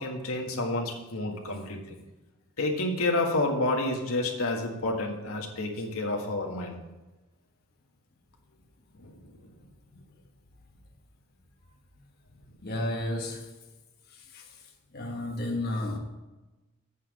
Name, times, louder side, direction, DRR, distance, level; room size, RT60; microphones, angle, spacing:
voice 1, 0.0-1.8 2.6-6.8 9.0-9.1, left 2 dB, 90° left, 1.7 m, -29 dB
voice 2, 12.6-13.5 14.1-14.6 14.9-16.0, left 1 dB, 50° left, 1.3 m, -33 dB
8.4 x 5.8 x 7.2 m
head